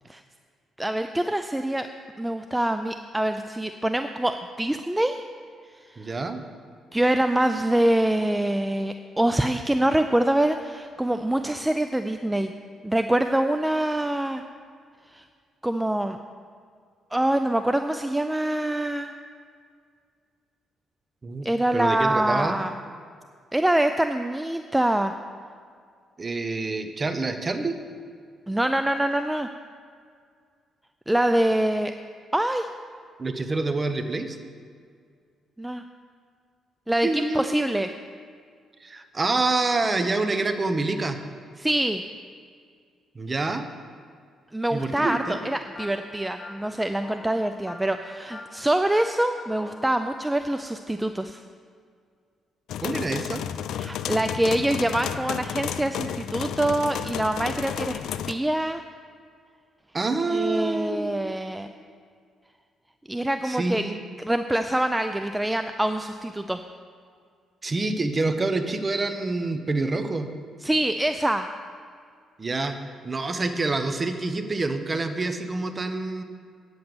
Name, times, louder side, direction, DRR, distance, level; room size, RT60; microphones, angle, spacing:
voice 1, 0.8-1.9 2.2-5.2 5.9-6.1 6.9-12.5 12.8-14.4 15.1-15.2 15.6-16.2 17.1-19.1 21.4-22.7 23.5-25.1 28.5-29.5 31.1-31.9 32.3-32.7 35.6-35.8 36.9-37.9 41.6-42.0 44.5-51.4 53.8-58.0 58.3-58.8 60.3-61.7 63.1-63.8 64.2-66.6 70.6-71.5, right 1 dB, 10° right, 8 dB, 0.4 m, -25 dB
voice 2, 6.0-6.4 21.2-21.5 21.7-22.6 26.2-27.8 33.2-34.4 37.0-37.4 38.8-41.2 43.1-43.7 44.7-45.4 52.8-53.4 59.9-61.3 63.4-64.0 67.6-70.3 72.4-72.8 73.0-76.2, right 3 dB, 30° right, 8 dB, 1.0 m, -27 dB
sound 1, 45.1-49.9, left 3 dB, 25° left, 0.9 m, -45 dB
sound 2, 52.7-58.3, left 9 dB, 80° left, 0.4 m, -32 dB
9.2 x 7.9 x 6.9 m, 2.1 s
cardioid pair, 90°, 0 cm